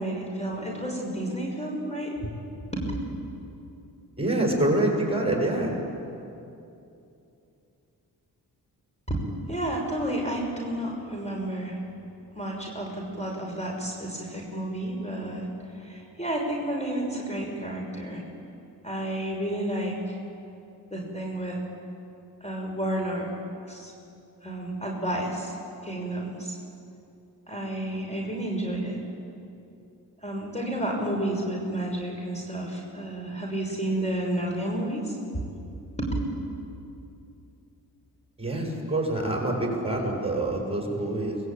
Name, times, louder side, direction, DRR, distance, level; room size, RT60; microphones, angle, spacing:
voice 1, 0.0-2.3 2.7-2.9 9.1-11.8 12.3-15.5 15.8-18.2 18.8-20.2 20.9-21.6 22.4-23.3 23.7-23.9 24.4-25.5 25.8-26.5 27.5-29.0 30.2-35.1 36.0-36.1, right 1 dB, 15° left, 0 dB, 6.2 m, -31 dB
voice 2, 4.2-5.7 38.4-41.4, right 1 dB, 15° right, 0 dB, 7.5 m, -26 dB
24.5 x 20.5 x 9.1 m, 2.7 s
cardioid pair, 55°, 42 cm